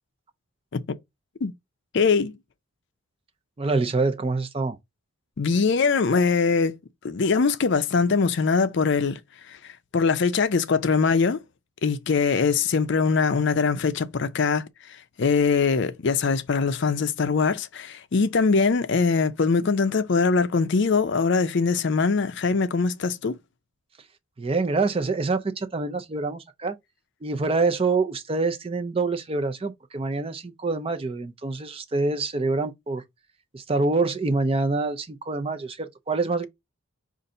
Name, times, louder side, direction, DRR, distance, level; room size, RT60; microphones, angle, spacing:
voice 1, 1.9-2.3 5.4-6.8 7.0-9.2 9.5-9.6 9.9-11.4 11.8-14.7 15.2-23.4, left 4 dB, 55° left, 0.5 m, -22 dB
voice 2, 3.6-4.8 24.4-26.8 27.2-33.0 33.5-36.5, right 3 dB, 25° right, 0.4 m, -26 dB
5.4 x 2.5 x 3.7 m
head